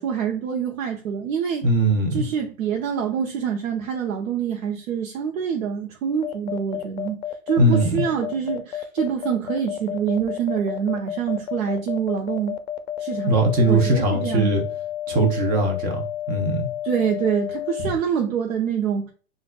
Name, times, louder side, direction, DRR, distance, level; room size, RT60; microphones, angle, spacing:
voice 1, 0.0-1.6 2.1-12.6 13.0-13.3 13.7-14.6 16.8-19.1, right 7 dB, 80° right, 0.8 m, -26 dB
voice 2, 1.6-2.2 7.6-7.9 13.3-14.6 15.1-16.7, right 2 dB, 20° right, 0.6 m, -20 dB
sound 1, 6.2-17.9, left 12 dB, 55° left, 0.5 m, -31 dB
3.9 x 2.4 x 2.2 m
hypercardioid pair, 140°, 40 cm